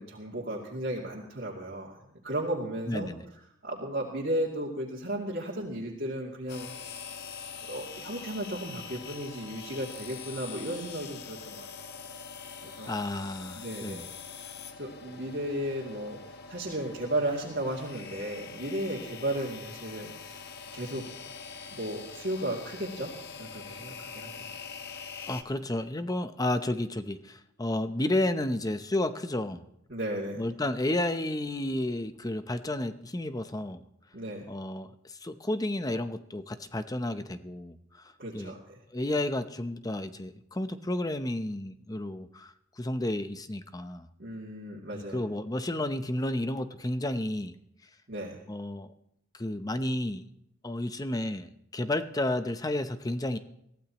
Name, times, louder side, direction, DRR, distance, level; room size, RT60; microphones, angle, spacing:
voice 1, 0.0-1.9 2.2-3.1 3.6-6.7 7.7-11.7 12.6-12.9 13.5-14.0 14.8-16.2 16.5-20.4 20.7-21.0 21.7-23.1 23.4-24.4 29.9-30.4 34.1-34.5 38.2-38.8 44.2-45.2 48.1-48.4, right 1 dB, 50° right, -5 dB, 2.5 m, -34 dB
voice 2, 2.9-3.2 12.8-14.0 25.3-29.6 30.4-33.8 34.5-37.8 38.3-38.5 38.9-44.1 44.9-47.5 48.5-48.9 49.4-50.2 50.6-53.4, left 1 dB, 15° left, 10 dB, 0.7 m, -31 dB
sound 1, 6.5-25.4, left 6 dB, 50° left, 1.1 m, -44 dB
22.5 x 15.5 x 3.0 m, 0.77 s
head